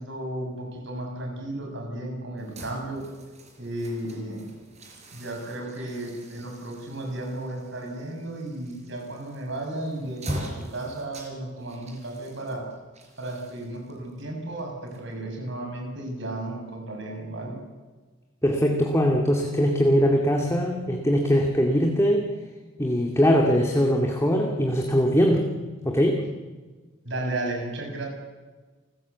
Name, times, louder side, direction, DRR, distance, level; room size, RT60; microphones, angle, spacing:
voice 1, 0.0-3.0 3.6-4.5 5.1-12.6 13.2-17.6 27.0-28.1, right 1 dB, 65° right, 1 dB, 7.1 m, -34 dB
sound 1, 2.4-15.5, equal, 35° right, 5.0 m, -42 dB
voice 2, 18.4-22.3 22.8-25.5 25.8-26.2, equal, 15° left, 1 dB, 2.1 m, -21 dB
29.5 x 14.5 x 8.3 m, 1.3 s
head